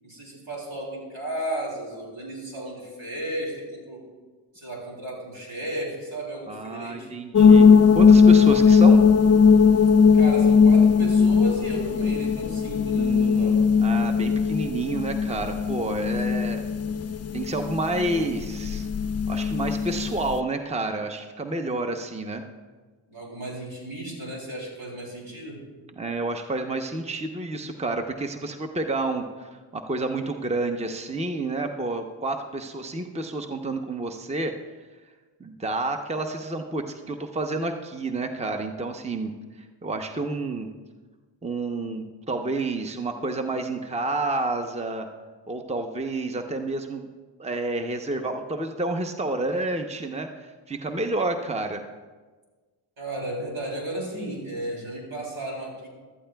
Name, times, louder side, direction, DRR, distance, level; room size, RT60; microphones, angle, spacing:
voice 1, 0.0-4.1 4.5-7.1 10.1-13.6 16.0-16.1 23.1-25.6 53.0-55.9, right 1 dB, 75° right, -2 dB, 3.4 m, -34 dB
voice 2, 6.5-7.7 7.9-9.0 12.9-16.7 17.3-18.9 19.3-22.4 26.0-34.6 35.4-39.3 39.8-40.7 41.4-45.1 45.5-47.1 47.4-51.8, right 2 dB, 15° right, 5 dB, 0.8 m, -29 dB
sound 1, 7.3-20.4, left 5 dB, 35° left, 0.4 m, -18 dB
14.5 x 12.5 x 2.3 m, 1.4 s
cardioid pair, 50°, 48 cm